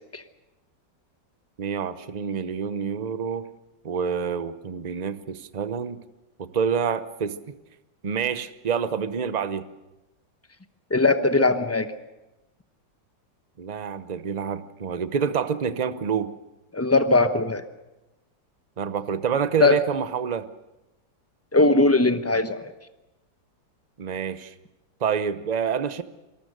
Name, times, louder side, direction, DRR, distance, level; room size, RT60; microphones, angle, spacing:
voice 1, 1.6-3.5 3.8-6.0 6.4-7.4 8.0-9.7 13.6-16.3 18.8-20.5 24.0-24.5 25.0-26.0, right 7 dB, 40° right, 13 dB, 0.6 m, -27 dB
voice 2, 10.9-11.9 16.7-17.6 19.6-19.8 21.5-22.7, left 3 dB, 10° left, 9 dB, 0.7 m, -20 dB
26.0 x 19.0 x 6.6 m, 1.0 s
omnidirectional pair, 2.0 m